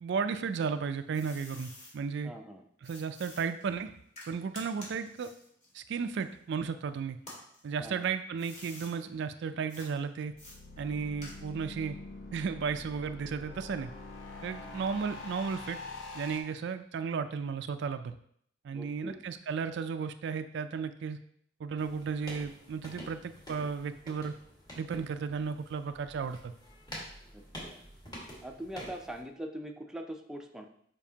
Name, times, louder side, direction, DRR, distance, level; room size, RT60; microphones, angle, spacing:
voice 1, 0.0-2.3 2.8-3.9 4.3-5.3 5.7-7.2 7.6-10.3 10.8-12.0 12.3-13.9 14.4-15.8 16.1-18.1 18.6-21.2 21.6-24.4 24.8-26.5, right 6 dB, 65° right, 10 dB, 0.4 m, -34 dB
sound 1, 0.5-1.9 2.8-6.7 7.2-8.9 9.7-9.9 10.4-11.7, left 1 dB, 40° left, 2.0 m, -50 dB
voice 2, 2.2-2.6 7.8-8.0 18.7-19.2 27.3-27.8 28.4-30.7, right 1 dB, 5° right, 2 dB, 0.5 m, -42 dB
sound 2, 10.2-16.4, left 3 dB, 85° left, 0.9 m, -45 dB
sound 3, 21.8-29.2, equal, 20° left, 1.6 m, -48 dB
7.0 x 5.1 x 2.8 m, 0.66 s
head